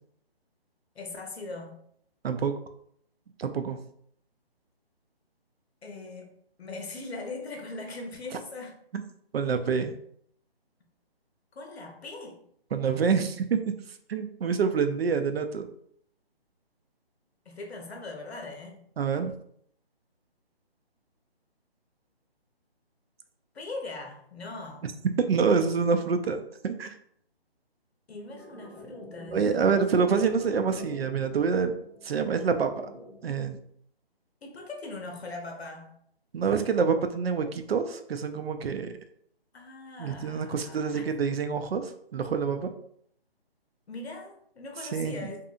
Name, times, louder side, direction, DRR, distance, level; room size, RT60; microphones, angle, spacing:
voice 1, 0.9-1.9 5.8-8.9 11.5-12.5 17.5-18.8 23.5-24.9 28.1-29.9 34.4-36.0 39.5-41.1 43.9-45.5, left 3 dB, 90° left, 0.8 m, -40 dB
voice 2, 2.2-2.5 3.4-3.8 9.3-10.0 12.7-13.7 14.1-15.7 19.0-19.3 25.2-27.0 29.3-31.7 32.0-32.7 33.2-33.6 36.3-38.9 40.0-42.7 44.9-45.3, right 5 dB, 75° right, 0.5 m, -26 dB
sound 1, 28.3-33.3, left 1 dB, 10° right, 0.8 m, -46 dB
2.7 x 2.6 x 2.5 m
hypercardioid pair, 175°, 31 cm